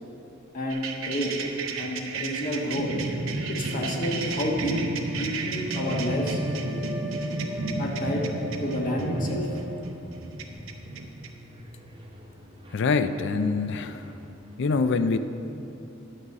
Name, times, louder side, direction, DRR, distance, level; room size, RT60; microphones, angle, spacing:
voice 1, 0.5-1.3 1.8-2.9 3.5-4.8 5.1-6.4 7.8-8.3 8.6-9.5, left 1 dB, 40° left, -1 dB, 1.3 m, -29 dB
sound 1, 0.7-11.3, right 3 dB, 80° right, 0.8 m, -32 dB
sound 2, 1.2-14.6, equal, 25° right, 0.9 m, -48 dB
sound 3, 5.7-10.1, equal, ahead, 0.8 m, -39 dB
voice 2, 12.7-14.0 14.6-15.2, left 4 dB, 60° left, 11 dB, 0.4 m, -24 dB
10.5 x 4.8 x 7.1 m, 2.9 s
head